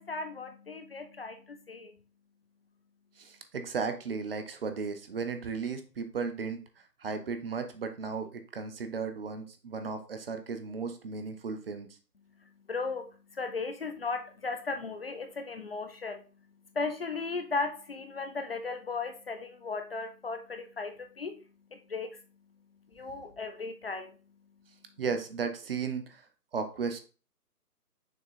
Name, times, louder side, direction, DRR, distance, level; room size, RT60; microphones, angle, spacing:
voice 1, 0.0-2.0 12.4-16.5 16.7-21.4 21.7-22.2 22.9-24.2, left 4 dB, 40° left, 7 dB, 0.5 m, -36 dB
voice 2, 3.2-6.6 7.0-11.9 25.0-26.3 26.5-27.0, right 5 dB, 35° right, 7 dB, 0.7 m, -35 dB
6.4 x 3.7 x 4.1 m, 0.36 s
figure-of-eight pair, 145°, 48 cm